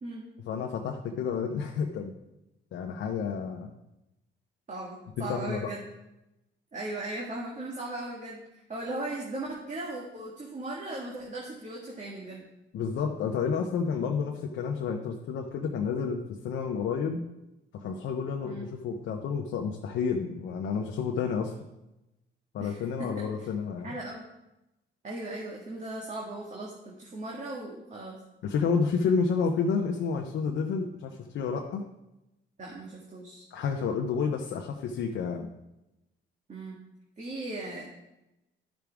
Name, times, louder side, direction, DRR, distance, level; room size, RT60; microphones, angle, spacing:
voice 1, 0.5-2.1 2.7-3.7 5.2-5.7 12.7-17.2 17.7-21.5 22.5-23.9 28.4-31.9 33.5-35.5, left 5 dB, 75° left, 1 dB, 0.9 m, -30 dB
voice 2, 4.7-5.8 6.7-12.5 18.4-18.7 22.6-23.5 23.8-24.3 25.0-28.2 32.6-33.4 36.5-36.8 37.2-37.8, right 2 dB, 35° right, -4 dB, 1.8 m, -38 dB
11.5 x 6.1 x 3.5 m, 0.92 s
cardioid pair, 90°, 20 cm